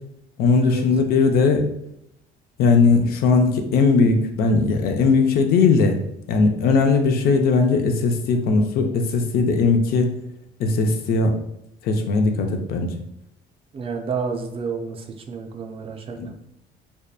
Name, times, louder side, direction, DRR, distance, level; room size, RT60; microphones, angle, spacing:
voice 1, 0.4-1.6 2.6-6.0 6.3-10.1 10.6-11.4 11.8-12.9 16.2-16.3, left 4 dB, 65° left, 5 dB, 0.4 m, -19 dB
voice 2, 13.7-16.3, right 5 dB, 35° right, 4 dB, 0.3 m, -30 dB
2.7 x 2.2 x 2.3 m, 0.80 s
cardioid pair, 110°, 17 cm